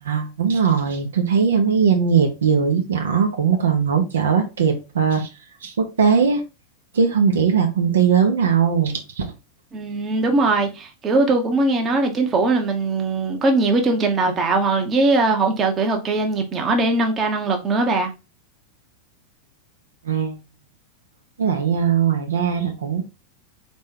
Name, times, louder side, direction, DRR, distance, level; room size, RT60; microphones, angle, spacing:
voice 1, 0.0-5.3 5.6-6.4 6.9-9.3 20.0-20.4 21.4-23.0, right 6 dB, 65° right, 0.9 m, -19 dB
voice 2, 9.7-18.1, right 3 dB, 25° right, 1.0 m, -20 dB
4.2 x 3.1 x 3.7 m
figure-of-eight pair, 90°, 0 cm